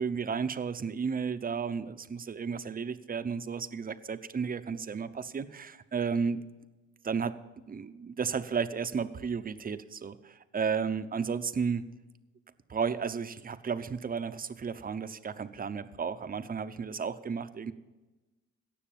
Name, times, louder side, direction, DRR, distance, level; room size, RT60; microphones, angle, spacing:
voice 1, 0.0-6.4 7.0-7.4 7.7-11.8 12.7-17.7, right 6 dB, 30° right, 12 dB, 0.8 m, -33 dB
17.0 x 6.7 x 7.4 m, 1.2 s
cardioid pair, 90°, 30 cm